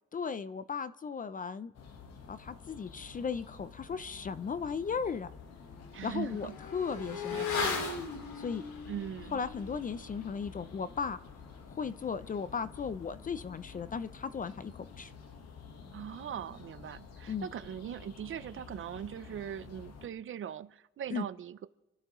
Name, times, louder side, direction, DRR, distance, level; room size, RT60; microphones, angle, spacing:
voice 1, 0.1-1.7 2.3-5.3 6.0-7.6 8.4-8.6 9.3-11.2 11.8-15.1 17.3-17.5 21.1-21.2, left 6 dB, 30° left, 0.4 m, -36 dB
sound 1, 1.7-20.1, left 5 dB, 60° left, 1.4 m, -51 dB
Motorcycle / Accelerating revving vroom, 4.4-4.5 4.9-14.9 15.2-15.3, left 4 dB, 85° left, 2.4 m, -41 dB
voice 2, 5.9-6.6 7.3-7.8 8.9-9.4 15.9-21.7, right 9 dB, 45° right, 0.5 m, -40 dB
27.5 x 12.5 x 3.0 m
wide cardioid pair, 165°, 29 cm